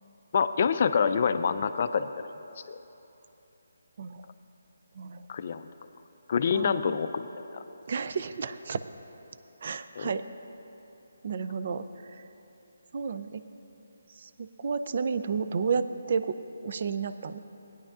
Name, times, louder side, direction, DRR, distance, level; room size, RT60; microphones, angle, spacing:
voice 1, 0.3-2.3 2.7-2.8 5.3-5.6 6.3-7.3 7.5-7.6 10.0-10.1, left 6 dB, 45° left, 11 dB, 0.4 m, -26 dB
voice 2, 5.0-5.3 6.5-7.0 7.9-8.8 9.6-10.2 11.2-12.2 12.9-13.4 14.2-17.4, right 5 dB, 50° right, 11 dB, 0.4 m, -32 dB
17.5 x 10.0 x 2.4 m, 3.0 s
figure-of-eight pair, 155°, 0 cm